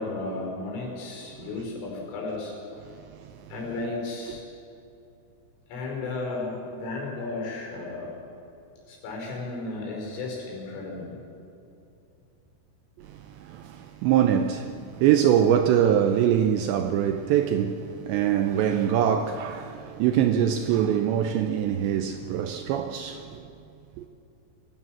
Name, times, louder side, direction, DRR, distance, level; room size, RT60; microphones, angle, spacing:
voice 1, 0.0-2.5 2.8-2.9 3.5-4.4 5.7-8.2 8.9-11.2, left 3 dB, 80° left, 7.7 m, -34 dB
voice 2, 13.0-23.5 24.0-24.1, right 9 dB, 85° right, 2.6 m, -24 dB
23.5 x 16.5 x 7.7 m
omnidirectional pair, 5.9 m